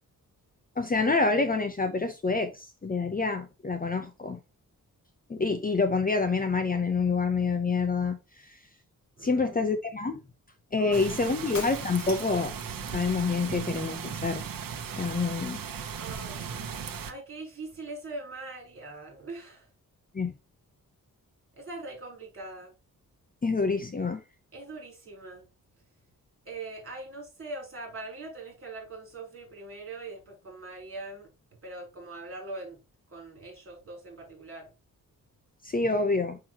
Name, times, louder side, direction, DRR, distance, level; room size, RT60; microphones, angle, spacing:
voice 1, 0.8-4.4 5.3-8.2 9.2-10.2 10.7-12.5 12.9-14.4 15.0-15.6 20.1-20.3 23.4-24.2 35.6-36.4, left 4 dB, 25° left, 0.7 m, -27 dB
voice 2, 9.2-9.6 10.8-11.0 16.0-16.6 17.1-19.7 21.6-22.7 24.5-25.4 26.5-31.3 31.6-32.8 33.1-34.7, right 2 dB, 40° right, 4.0 m, -42 dB
sound 1, 10.9-17.1, right 7 dB, 80° right, 1.0 m, -37 dB
Shatter, 11.5-12.5, left 4 dB, 55° left, 1.5 m, -40 dB
6.1 x 5.9 x 2.9 m
wide cardioid pair, 170°, 33 cm